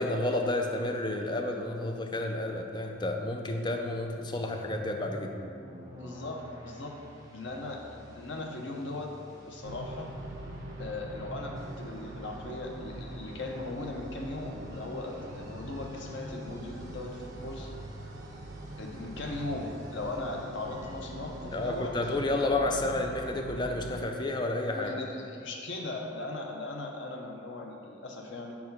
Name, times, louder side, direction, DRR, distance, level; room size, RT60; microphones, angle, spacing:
voice 1, 0.0-5.4 21.5-24.9, left 2 dB, 25° left, 3 dB, 0.4 m, -31 dB
sound 1, 4.1-21.9, equal, 20° right, 0.7 m, -49 dB
voice 2, 6.0-7.0 7.3-9.1 9.5-10.1 10.8-17.7 18.8-21.9 24.6-28.5, left 2 dB, 85° left, 1 dB, 0.8 m, -38 dB
sound 2, 9.6-24.0, right 2 dB, 85° right, 0.6 m, -43 dB
4.7 x 4.2 x 5.4 m, 2.5 s
head